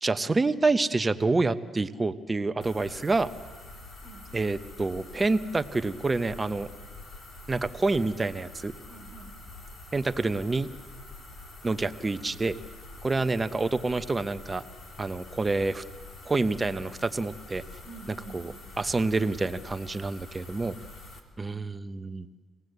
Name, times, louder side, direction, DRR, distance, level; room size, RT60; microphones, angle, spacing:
voice 1, 0.0-3.3 4.3-6.7 7.5-8.7 9.9-10.7 11.6-12.6 13.0-14.6 15.0-15.8 16.3-17.6 18.3-20.8 21.4-22.3, right 3 dB, 25° right, 10 dB, 1.0 m, -27 dB
sound 1, 2.6-21.2, left 2 dB, 60° left, 3.5 m, -46 dB
voice 2, 4.0-4.3 8.9-9.4 17.8-18.5 21.4-21.8, right 3 dB, 85° left, 6 dB, 3.5 m, -48 dB
26.5 x 18.0 x 8.1 m, 1.4 s
cardioid pair, 90°, 0 cm